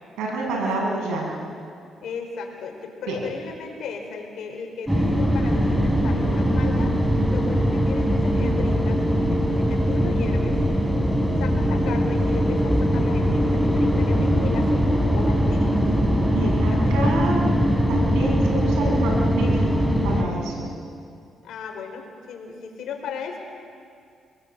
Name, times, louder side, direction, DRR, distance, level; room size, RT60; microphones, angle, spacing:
voice 1, 0.2-1.3 3.1-3.2 9.4-9.7 16.2-17.4 17.9-19.6 20.0-20.7, right 2 dB, 90° right, -2 dB, 7.0 m, -28 dB
voice 2, 2.0-6.9 7.3-10.6 11.3-15.7 16.4-17.1 21.4-23.4, left 5 dB, 75° left, 2 dB, 4.8 m, -36 dB
sound 1, 4.9-20.2, equal, ahead, 3.3 m, -21 dB
24.5 x 22.0 x 8.1 m, 2.3 s
cardioid pair, 90°, 0 cm